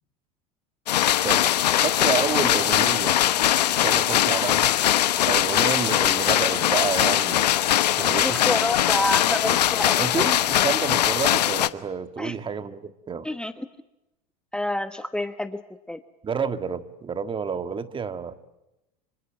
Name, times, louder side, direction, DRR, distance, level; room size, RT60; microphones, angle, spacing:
sound 1, 0.9-11.7, left 12 dB, 85° left, 1.0 m, -21 dB
voice 1, 1.8-3.2 3.8-4.7 5.3-7.5 7.9-8.4 10.0-13.3 16.2-18.3, right 6 dB, 25° right, 11 dB, 1.7 m, -29 dB
voice 2, 8.1-10.0 12.2-12.4 13.2-13.7 14.5-15.6 15.9-16.0, left 1 dB, 5° left, 11 dB, 1.1 m, -28 dB
26.5 x 25.5 x 8.0 m, 0.95 s
hypercardioid pair, 100°, 20 cm